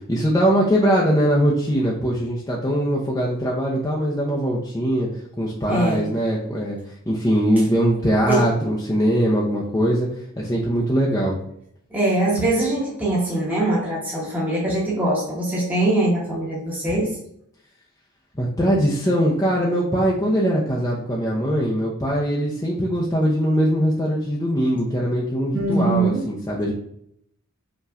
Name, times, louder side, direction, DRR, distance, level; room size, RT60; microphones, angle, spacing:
voice 1, 0.1-5.1 5.4-6.8 7.1-10.1 10.4-11.4 18.4-26.7, equal, 15° left, -4 dB, 0.6 m, -21 dB
voice 2, 5.7-6.1 8.3-8.4 11.9-17.1 25.5-26.2, right 2 dB, 10° right, -7 dB, 1.1 m, -22 dB
5.5 x 3.0 x 2.5 m, 0.71 s
head